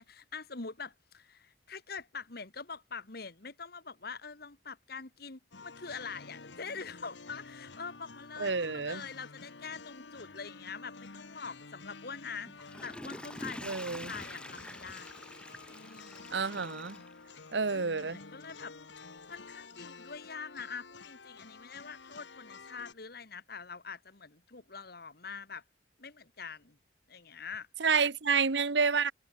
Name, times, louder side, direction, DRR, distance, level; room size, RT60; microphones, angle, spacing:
voice 1, 0.0-15.3 15.7-16.4 17.7-18.7 19.3-25.6 26.0-26.8 27.1-27.7, left 5 dB, 55° left, 1.8 m, -44 dB
sound 1, 5.5-22.9, left 4 dB, 75° left, 1.4 m, -50 dB
voice 2, 8.4-9.0 13.6-14.1 16.3-17.0 17.5-18.2 27.8-29.1, right 5 dB, 70° right, 1.1 m, -29 dB
Water / Toilet flush, 12.4-17.7 18.2-18.3, left 1 dB, 5° left, 4.5 m, -46 dB
head